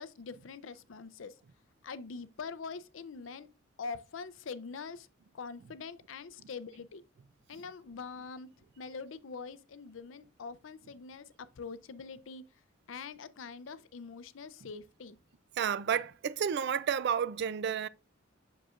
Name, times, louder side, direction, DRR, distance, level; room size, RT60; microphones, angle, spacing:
voice 1, 0.0-1.4 1.8-3.5 3.8-5.1 5.3-7.0 7.5-12.5 12.9-15.2, left 5 dB, 85° left, 0.5 m, -44 dB
voice 2, 15.6-17.9, right 7 dB, 60° right, 0.4 m, -31 dB
7.6 x 6.4 x 2.5 m
head